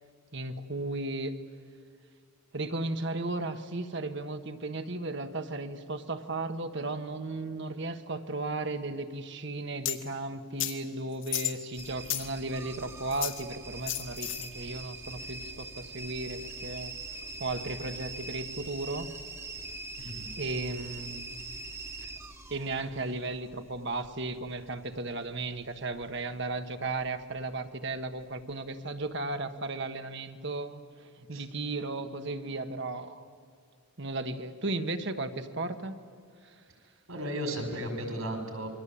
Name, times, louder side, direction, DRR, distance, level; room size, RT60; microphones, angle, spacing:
voice 1, 0.3-1.3 2.5-16.9 17.4-19.1 20.4-21.3 22.5-30.8 31.3-33.3 34.0-36.0 36.4-36.5, right 2 dB, 55° right, 8 dB, 1.5 m, -35 dB
sound 1, 9.8-10.0 10.6-10.7 11.2-12.3 13.1-13.4 13.9-14.5, left 14 dB, 60° left, 2.0 m, -33 dB
sound 2, 11.7-26.6 26.9-27.5 28.1-28.5 29.0-29.1, right 3 dB, 10° right, 1.3 m, -43 dB
voice 2, 20.0-20.3 31.3-31.5 37.1-38.7, equal, 75° right, 5 dB, 5.6 m, -35 dB
28.0 x 23.5 x 8.7 m, 2.2 s
head